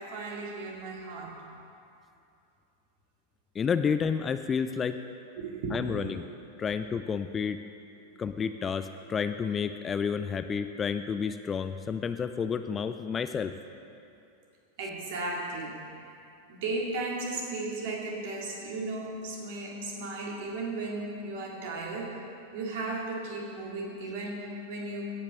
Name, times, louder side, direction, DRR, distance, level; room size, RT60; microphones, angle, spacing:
voice 1, 0.0-1.3 5.4-6.1 14.8-15.8 16.5-22.2 22.5-25.2, right 2 dB, 50° right, -2 dB, 2.2 m, -35 dB
voice 2, 3.6-5.0 5.7-6.2 6.6-7.6 8.2-13.6, left 6 dB, 20° left, 10 dB, 0.4 m, -30 dB
16.0 x 5.9 x 5.6 m, 2.6 s
figure-of-eight pair, 90°, 0 cm